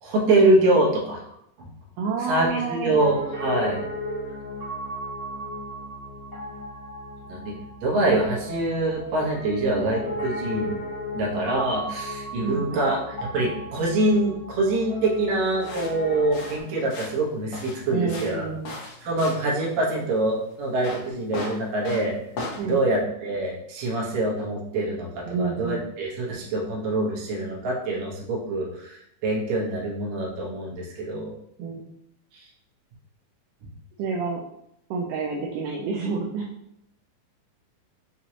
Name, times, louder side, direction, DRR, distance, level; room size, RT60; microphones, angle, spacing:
voice 1, 0.0-1.2 1.6-1.7 2.3-3.8 7.3-10.8 11.1-18.5 19.0-22.1 22.6-31.3 32.3-32.4 33.6-33.7, right 2 dB, 65° right, -3 dB, 2.2 m, -25 dB
voice 2, 2.0-3.0 12.4-12.9 17.9-18.7 22.6-22.8 25.3-26.0 31.6-31.8 34.0-34.4 34.9-36.5, right 4 dB, 80° right, -1 dB, 1.9 m, -29 dB
Piano, 2.9-16.6, equal, 25° right, 1.1 m, -35 dB
sound 1, 15.6-22.6, left 2 dB, 75° left, 1.3 m, -37 dB
6.0 x 3.0 x 2.9 m, 0.76 s
omnidirectional pair, 3.8 m